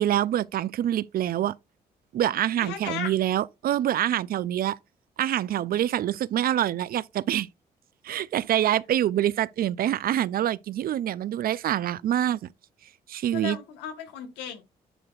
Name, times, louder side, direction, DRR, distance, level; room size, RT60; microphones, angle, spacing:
voice 1, 0.0-1.5 2.1-4.8 5.2-7.5 8.0-12.5 13.1-13.6, right 11 dB, 60° right, 0.4 m, -25 dB
voice 2, 2.6-3.1 13.3-14.6, left 8 dB, 85° left, 1.3 m, -35 dB
10.0 x 3.9 x 2.4 m
supercardioid pair, 60°, 17 cm